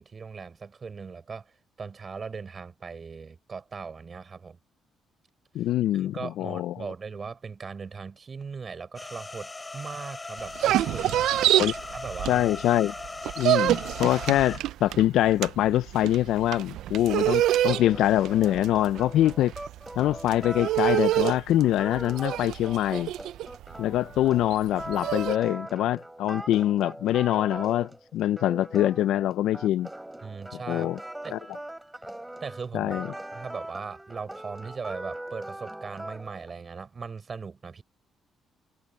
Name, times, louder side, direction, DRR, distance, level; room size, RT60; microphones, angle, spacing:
voice 1, 0.0-4.6 5.6-5.7 5.9-11.3 11.9-12.5 30.2-30.9 31.2-31.4 32.4-33.0 33.3-37.8, right 5 dB, 40° right, 5.7 m, -39 dB
voice 2, 5.5-6.8 11.5-11.7 12.2-12.9 13.4-19.5 20.0-23.1 23.8-29.9 30.7-31.0 31.3-31.4 32.7-33.1, left 13 dB, 85° left, 0.4 m, -24 dB
sound 1, 9.0-14.6, left 2 dB, 20° left, 4.2 m, -39 dB
sound 2, 10.4-12.7 13.0-25.4, right 14 dB, 85° right, 0.3 m, -26 dB
sound 3, 17.4-36.5, right 1 dB, 10° right, 3.2 m, -40 dB
cardioid pair, 90°, 0 cm